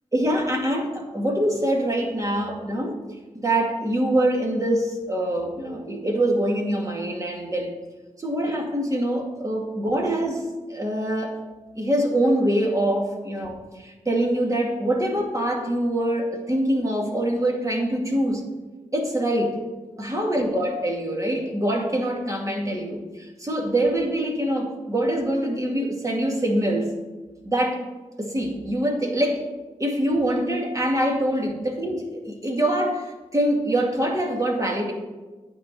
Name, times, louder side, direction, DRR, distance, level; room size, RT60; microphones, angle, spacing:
voice 1, 0.1-3.0 3.3-7.7 8.2-11.3 11.8-18.4 18.9-19.6 20.0-26.9 27.4-27.8 28.2-29.4 29.8-34.9, right 1 dB, 25° right, 0 dB, 2.3 m, -24 dB
9.2 x 4.3 x 7.5 m, 1.2 s
cardioid pair, 55°, 13 cm